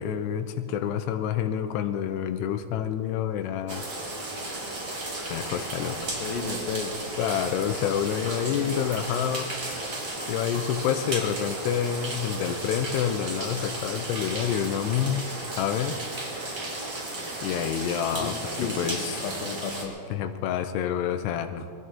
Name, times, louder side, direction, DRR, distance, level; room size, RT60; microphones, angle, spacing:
voice 1, 0.0-3.8 5.3-6.0 7.2-9.6 10.3-15.3 15.6-16.0 17.4-19.3 20.1-21.7, left 9 dB, 85° left, 8 dB, 2.8 m, -28 dB
sound 1, 3.7-19.8, right 2 dB, 35° right, 1.7 m, -34 dB
voice 2, 6.2-6.9 8.2-8.8 18.1-18.3 18.6-20.0, left 6 dB, 70° left, 4 dB, 2.6 m, -34 dB
21.5 x 15.0 x 3.8 m, 2.5 s
omnidirectional pair, 4.7 m